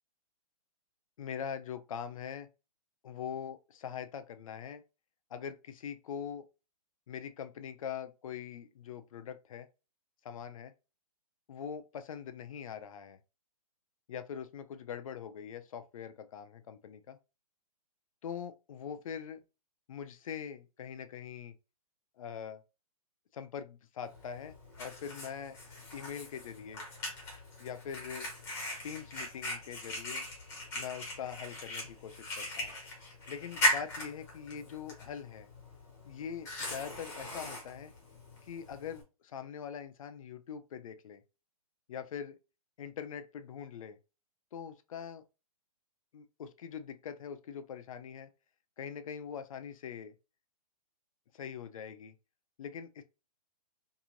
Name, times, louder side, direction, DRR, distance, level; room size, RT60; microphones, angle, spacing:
voice 1, 1.2-2.5 3.0-4.8 5.3-6.5 7.1-9.7 10.2-10.7 11.5-13.2 14.1-17.2 18.2-19.4 19.9-21.5 22.2-22.6 23.3-25.6 25.9-26.8 27.6-28.3 28.8-30.3 30.7-32.7 33.3-35.5 36.0-37.9 38.4-41.2 41.9-42.4 42.8-44.0 44.5-45.2 46.1-48.3 48.8-50.1 51.3-52.1 52.6-53.0, left 8 dB, 60° left, 0.5 m, -43 dB
Fire, 24.1-39.0, left 1 dB, 15° left, 0.9 m, -39 dB
2.9 x 2.6 x 2.5 m
hypercardioid pair, 165°, 19 cm